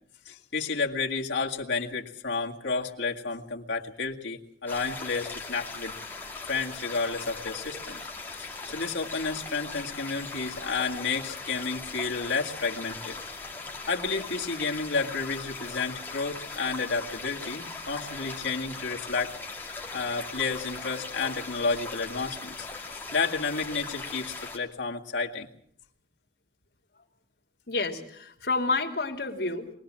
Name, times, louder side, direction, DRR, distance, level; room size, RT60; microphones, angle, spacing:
voice 1, 0.3-5.9 6.5-8.0 8.4-13.2 13.9-19.3 19.9-22.7 23.1-25.5, left 4 dB, 85° left, 1 dB, 2.1 m, -31 dB
sound 1, 4.7-24.6, left 3 dB, 10° left, 2.5 m, -39 dB
voice 2, 27.7-29.7, left 3 dB, 65° left, 2 dB, 2.8 m, -29 dB
23.0 x 19.5 x 7.5 m, 0.65 s
head